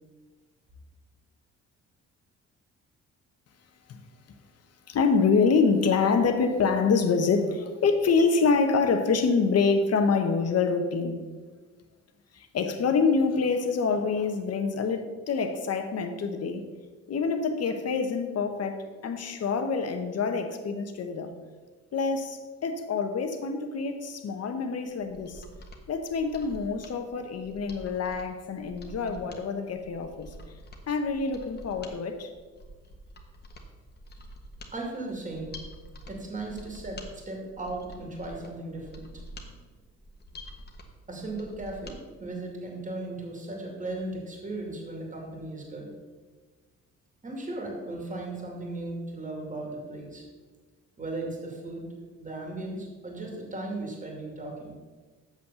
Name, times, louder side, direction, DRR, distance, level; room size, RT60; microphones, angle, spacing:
voice 1, 4.9-11.2 12.3-16.7 17.1-21.3 21.9-25.4 25.9-30.3 30.9-32.3, left 4 dB, 55° left, 1.1 m, -26 dB
Mechanisms, 24.9-42.0 42.3-42.4, equal, 35° left, 1.4 m, -47 dB
voice 2, 34.7-35.5 36.1-39.1 41.1-45.9 47.2-50.2 51.0-51.9 52.2-54.7, right 2 dB, 25° right, 2.4 m, -36 dB
7.5 x 5.6 x 6.8 m
cardioid pair, 90°, 30 cm